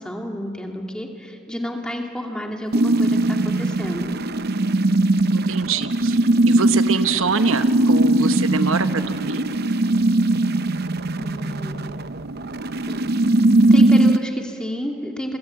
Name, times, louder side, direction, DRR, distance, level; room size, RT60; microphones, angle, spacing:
voice 1, 0.0-4.2 11.2-12.0 12.9-13.1 13.7-15.4, equal, 5° left, 1 dB, 2.4 m, -30 dB
sound 1, 2.7-14.2, right 2 dB, 45° right, 0.7 m, -19 dB
voice 2, 5.3-6.2 6.5-9.4, right 4 dB, 75° right, 9 dB, 1.1 m, -24 dB
26.5 x 26.0 x 8.5 m, 3.0 s
head